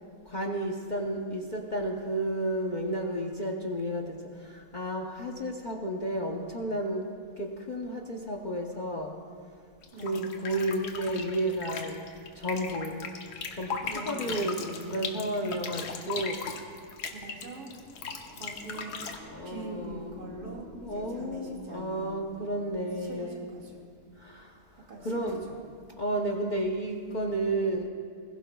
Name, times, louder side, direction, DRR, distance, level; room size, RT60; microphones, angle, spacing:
voice 1, 0.2-7.0 7.4-9.1 9.9-12.0 12.3-13.0 13.5-16.4 19.0-20.5 20.8-23.7 24.2-25.5 26.0-27.9, right 1 dB, 40° left, 1 dB, 0.8 m, -32 dB
sound 1, 9.8-19.2, left 5 dB, 75° left, 1.5 m, -38 dB
voice 2, 9.9-10.3 13.8-15.9 17.0-17.7 18.4-19.1 19.4-22.2 23.0-23.7 24.9-25.1 25.5-25.6, right 1 dB, 80° right, -3 dB, 2.6 m, -43 dB
sound 2, 17.5-23.4, right 1 dB, 35° right, 2.2 m, -51 dB
21.0 x 16.0 x 2.3 m, 2.1 s
omnidirectional pair, 1.7 m